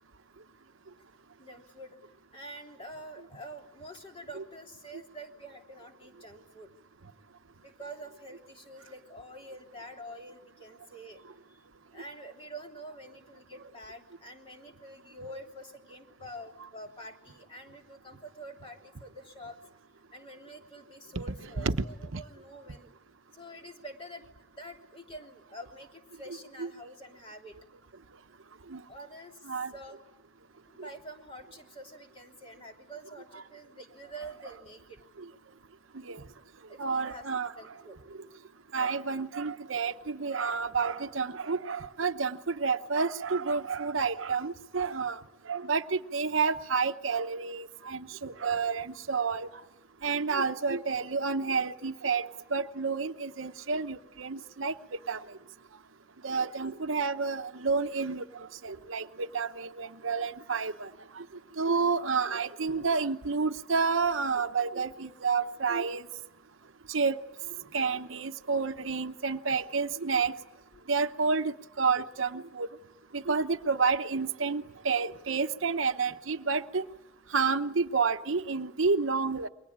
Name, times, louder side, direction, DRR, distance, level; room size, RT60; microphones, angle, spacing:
voice 1, 1.4-2.0 2.3-6.7 7.6-11.2 11.5-11.6 11.9-19.6 20.1-22.9 23.3-24.3 24.6-27.6 28.9-30.0 30.7-35.0 36.7-38.0 56.3-56.5 70.7-70.9, right 1 dB, 25° left, 2 dB, 3.2 m, -47 dB
voice 2, 36.8-37.5 38.7-45.2 45.5-49.5 50.0-54.7 55.1-55.2 56.2-60.9 61.1-61.2 61.6-66.1 66.9-67.2 67.7-70.3 70.9-72.7 73.1-76.8 77.3-79.5, right 5 dB, 70° right, 9 dB, 0.9 m, -30 dB
29.0 x 23.0 x 8.7 m, 1.0 s
head